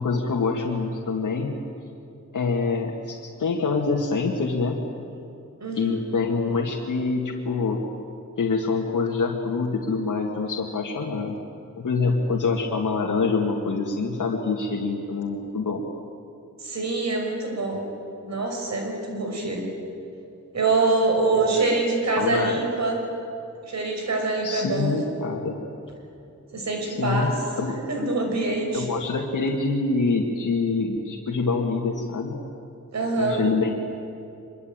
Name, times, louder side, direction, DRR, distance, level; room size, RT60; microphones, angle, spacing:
voice 1, 0.0-1.5 2.3-4.8 5.7-7.8 8.4-11.4 11.8-15.8 22.2-22.6 24.4-25.6 26.9-27.3 27.6-27.7 28.7-32.3 33.2-33.7, left 4 dB, 85° left, 0 dB, 2.1 m, -25 dB
voice 2, 5.6-6.0 16.6-17.9 18.3-19.7 20.5-23.0 23.6-25.0 26.5-27.4 27.9-28.9 32.9-33.4, right 3 dB, 60° right, 2 dB, 5.5 m, -25 dB
24.5 x 22.5 x 8.9 m, 2.7 s
wide cardioid pair, 160°, 30 cm